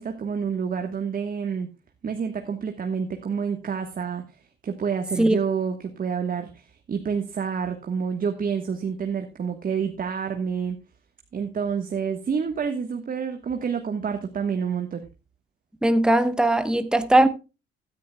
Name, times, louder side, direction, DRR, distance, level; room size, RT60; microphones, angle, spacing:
voice 1, 0.0-1.7 2.0-4.3 4.6-10.8 11.3-15.1, right 6 dB, 45° right, 1.4 m, -28 dB
voice 2, 15.8-17.3, right 1 dB, 5° right, 1.0 m, -19 dB
16.0 x 10.5 x 2.3 m
cardioid pair, 90°, 20 cm